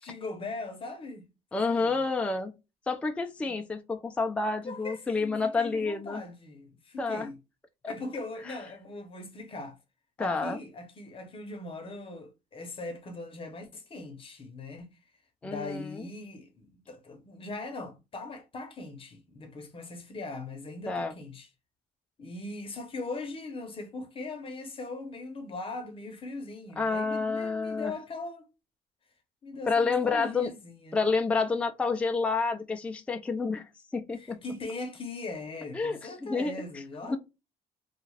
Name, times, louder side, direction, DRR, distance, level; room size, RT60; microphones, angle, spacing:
voice 1, 0.0-1.3 1.7-1.9 3.4-3.5 4.7-7.4 7.9-9.8 10.2-14.9 15.4-21.5 22.2-28.5 29.4-31.0 34.2-37.2, left 3 dB, 30° left, 0.8 m, -40 dB
voice 2, 1.5-2.5 2.9-6.2 7.0-7.3 7.8-7.9 8.4-8.6 10.2-10.6 15.4-16.1 20.9-21.2 26.8-27.9 29.6-30.5 30.9-34.4 35.7-37.2, left 4 dB, 5° left, 0.3 m, -29 dB
2.4 x 2.3 x 3.1 m
cardioid pair, 110°, 17 cm